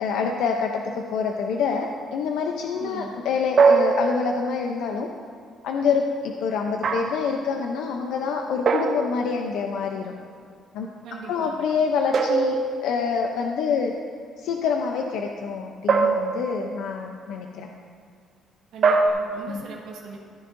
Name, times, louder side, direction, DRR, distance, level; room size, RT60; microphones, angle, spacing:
voice 1, 0.0-5.1 5.6-10.1 10.7-10.9 11.3-12.6 12.8-13.9 14.4-17.7 19.5-19.6, left 5 dB, 80° left, 2 dB, 0.6 m, -26 dB
voice 2, 2.8-3.1 11.0-11.6 18.7-20.2, right 5 dB, 70° right, -3 dB, 1.4 m, -39 dB
sound 1, 3.6-4.6 6.8-7.3 8.7-9.5 12.1-13.2 15.9-16.8 18.8-19.1, right 4 dB, 40° right, 0.6 m, -22 dB
14.5 x 9.4 x 2.6 m, 2.4 s
cardioid pair, 165°, 0 cm